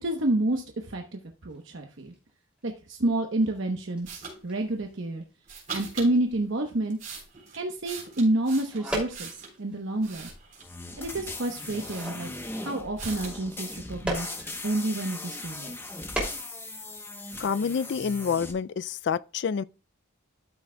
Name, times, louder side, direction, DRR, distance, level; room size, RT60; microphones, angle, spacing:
voice 1, 0.0-2.1 2.6-5.2 5.7-7.0 7.6-10.3 11.0-14.3 14.6-15.7, right 1 dB, 65° right, 1.0 m, -29 dB
sound 1, 1.5-3.0 3.3-7.9 8.3-15.1 15.7-17.5 17.8-17.9, equal, 5° right, 2.6 m, -40 dB
sound 2, 4.1-4.4 5.5-6.1 6.7-9.6 10.0-10.8 11.3-11.4 11.7-12.6 13.0-13.4, right 5 dB, 40° right, 3.9 m, -41 dB
sound 3, 10.6-18.5, left 2 dB, 10° left, 0.9 m, -39 dB
voice 2, 17.4-19.6, left 6 dB, 55° left, 0.3 m, -28 dB
13.0 x 6.1 x 2.2 m
head